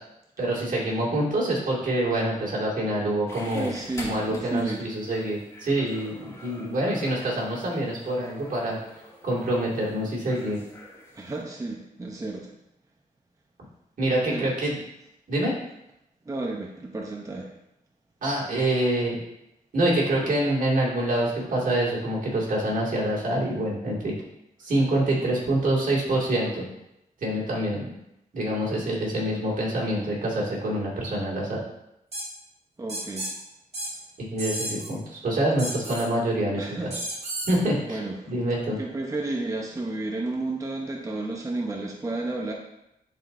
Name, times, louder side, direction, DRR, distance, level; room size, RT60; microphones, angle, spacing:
voice 1, 0.4-3.7 4.0-8.8 9.2-10.6 14.0-14.8 15.3-15.5 18.2-19.2 19.7-24.1 24.6-26.6 27.2-27.9 28.3-31.6 34.2-36.9 37.5-38.8, right 1 dB, 65° right, -5 dB, 2.2 m, -26 dB
sound 1, 3.3-11.4, left 1 dB, 20° left, 2.3 m, -46 dB
voice 2, 3.5-4.8 11.1-12.5 14.3-14.4 16.3-17.5 32.8-33.3 36.6-36.9 37.9-38.2 38.8-42.5, right 2 dB, 20° right, 0 dB, 0.7 m, -32 dB
sound 2, 32.1-32.2 32.9-33.3 33.7-33.9 34.4-34.9 35.6-36.0 36.9-37.6, right 1 dB, 45° right, 2.2 m, -32 dB
10.5 x 4.1 x 2.6 m, 0.86 s
wide cardioid pair, 95°, 15 cm